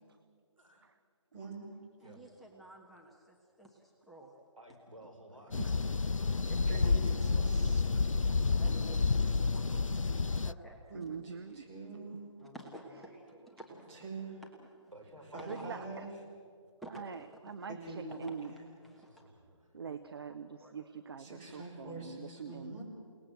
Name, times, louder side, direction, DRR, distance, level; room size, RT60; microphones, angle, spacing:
voice 1, 0.6-0.9 2.0-2.2 4.6-5.9 6.6-7.9 14.9-15.9 18.8-19.7, right 1 dB, 85° right, 3 dB, 5.4 m, -54 dB
voice 2, 1.3-1.7 6.7-7.8 10.9-12.2 13.9-14.4 15.3-16.1 17.7-18.6 21.2-22.8, right 3 dB, 20° right, -3 dB, 5.6 m, -45 dB
voice 3, 2.0-4.3 6.4-6.6 8.5-10.8 12.4-13.9 14.6-14.9 15.4-15.7 16.8-17.5 18.1-18.3 18.8-19.1 19.8-20.0 20.6-20.7, right 1 dB, ahead, -3 dB, 1.3 m, -52 dB
sound 1, 5.5-10.5, left 4 dB, 85° left, 0.5 m, -29 dB
voice 4, 10.9-11.7 15.4-16.1 16.9-18.5 19.7-22.8, right 6 dB, 50° right, 10 dB, 1.0 m, -44 dB
29.0 x 19.0 x 7.7 m, 2.2 s
figure-of-eight pair, 145°, 16 cm